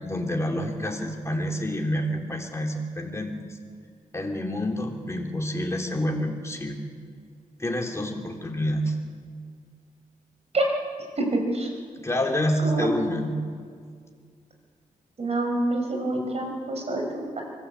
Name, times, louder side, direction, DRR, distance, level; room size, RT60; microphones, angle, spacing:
voice 1, 0.0-3.3 4.1-6.8 7.6-8.9 12.0-13.3, equal, 20° left, 1 dB, 3.3 m, -28 dB
voice 2, 11.2-11.7 12.6-12.9 15.2-17.4, right 2 dB, 45° right, 2 dB, 5.5 m, -26 dB
24.0 x 15.0 x 8.4 m, 2.1 s
wide cardioid pair, 100°, 14 cm